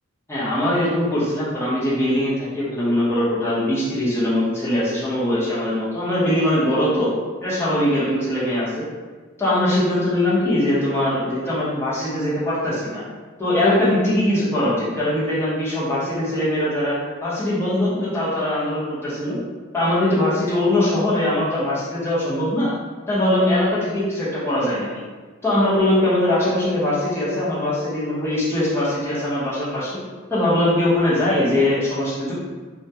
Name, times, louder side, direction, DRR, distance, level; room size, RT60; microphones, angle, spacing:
voice 1, 0.3-7.1 7.4-8.8 9.4-13.0 13.4-19.4 19.7-22.7 23.1-24.9 25.4-30.0 30.3-32.3, left 1 dB, 10° left, -10 dB, 0.7 m, -21 dB
2.2 x 2.1 x 2.7 m, 1.4 s
head